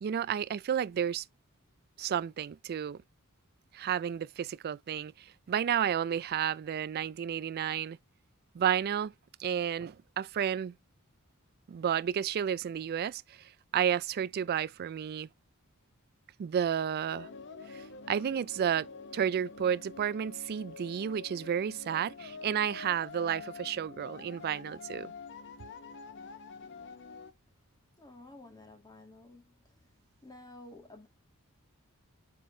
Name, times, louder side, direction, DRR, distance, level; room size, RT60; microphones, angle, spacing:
voice 1, 0.0-1.2 2.0-3.0 3.7-8.0 8.5-9.1 9.4-10.7 11.7-13.4 13.7-15.3 16.4-17.3 17.7-18.9 19.1-25.1, right 9 dB, 45° right, 0.3 m, -31 dB
sound 1, 17.1-27.3, left 4 dB, 55° left, 0.8 m, -47 dB
voice 2, 28.0-29.5 30.2-31.1, left 2 dB, 20° left, 2.0 m, -51 dB
7.5 x 5.1 x 2.7 m
head